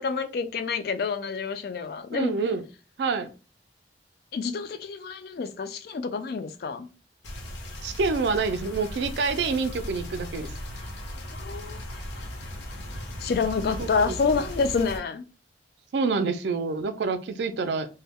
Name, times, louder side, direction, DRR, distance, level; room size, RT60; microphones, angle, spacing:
voice 1, 0.0-2.3 4.3-6.9 11.3-11.8 13.2-15.2, left 5 dB, 55° left, 0.3 m, -28 dB
voice 2, 2.1-2.6 3.0-3.3 7.8-10.5 13.8-14.2 15.9-17.9, right 4 dB, 75° right, 0.4 m, -27 dB
sound 1, 7.2-15.0, left 1 dB, 80° left, 0.7 m, -37 dB
2.1 x 2.0 x 3.4 m
head